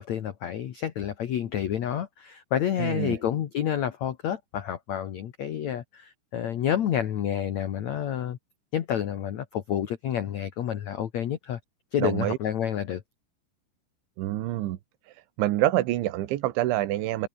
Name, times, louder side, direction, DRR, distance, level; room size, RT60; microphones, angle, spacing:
voice 1, 0.0-8.4 8.7-11.6 11.9-13.0, left 10 dB, 70° left, 1.7 m, -29 dB
voice 2, 2.8-3.2 12.0-12.4 14.2-14.8 15.4-17.3, right 15 dB, 80° right, 3.7 m, -26 dB
open air
omnidirectional pair, 5.4 m